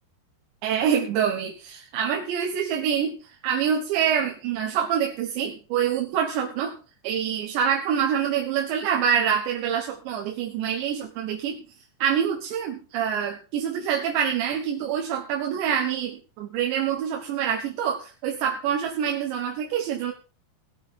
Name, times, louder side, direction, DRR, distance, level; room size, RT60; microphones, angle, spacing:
voice 1, 0.6-3.2 3.4-6.8 7.0-11.6 12.0-20.1, right 8 dB, 80° right, 2 dB, 3.6 m, -26 dB
19.5 x 8.7 x 4.4 m, 0.35 s
omnidirectional pair, 5.1 m